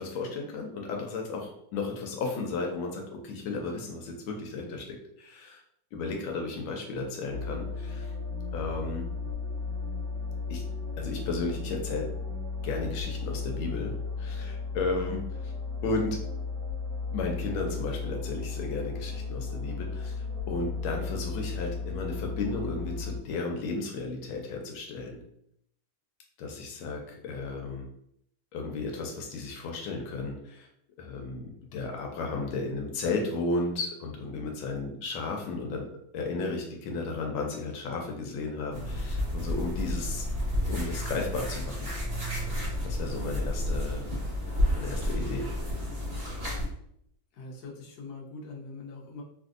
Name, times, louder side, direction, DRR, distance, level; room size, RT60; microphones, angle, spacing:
voice 1, 0.0-5.6 5.9-8.1 8.5-9.1 10.5-10.6 11.0-12.1 12.6-15.5 15.8-16.2 17.1-20.2 20.5-25.2 26.4-27.9 28.5-30.7 31.0-35.9 36.1-40.3 40.7-41.9 42.5-44.0 44.7-45.5, left 3 dB, 85° left, 2 dB, 1.4 m, -34 dB
sound 1, 7.3-23.2, left 4 dB, 85° right, 1.6 m, -35 dB
sound 2, 38.7-46.7, left 1 dB, 40° right, 1.0 m, -31 dB
voice 2, 47.3-49.2, left 3 dB, 65° left, -2 dB, 1.1 m, -42 dB
3.5 x 2.6 x 2.4 m, 0.72 s
omnidirectional pair, 2.2 m